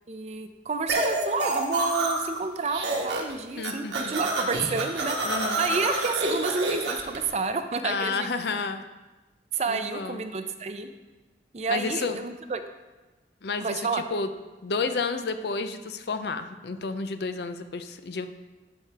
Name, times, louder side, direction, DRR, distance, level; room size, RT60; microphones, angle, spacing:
voice 1, 0.1-8.3 9.5-10.9 11.5-12.6 13.6-14.1, right 4 dB, 40° right, 8 dB, 0.5 m, -30 dB
sound 1, 0.9-2.4 2.7-3.3 3.6-7.2, right 2 dB, 80° right, 1.3 m, -28 dB
voice 2, 3.6-4.1 5.2-5.7 7.8-8.8 9.7-10.2 11.7-12.2 13.4-14.3 14.6-18.3, left 4 dB, 65° left, 9 dB, 0.5 m, -31 dB
13.0 x 4.7 x 3.4 m, 1.2 s
head